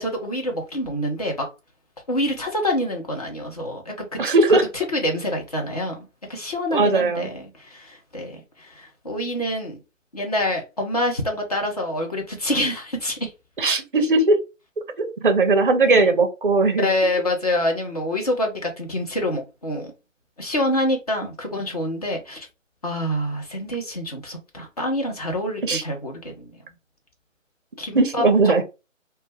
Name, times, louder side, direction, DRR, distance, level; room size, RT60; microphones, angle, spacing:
voice 1, 0.0-1.5 2.1-4.2 4.5-6.0 6.3-9.8 10.1-13.3 15.8-16.2 16.8-19.9 20.4-22.5 22.8-26.5 27.8-28.5, left 1 dB, 30° left, 0.6 m, -26 dB
voice 2, 4.2-4.6 6.7-7.3 13.6-14.4 15.0-16.9 25.6-25.8 27.9-28.6, right 3 dB, 40° right, 0.5 m, -18 dB
2.1 x 2.0 x 3.2 m
figure-of-eight pair, 150°, 40 cm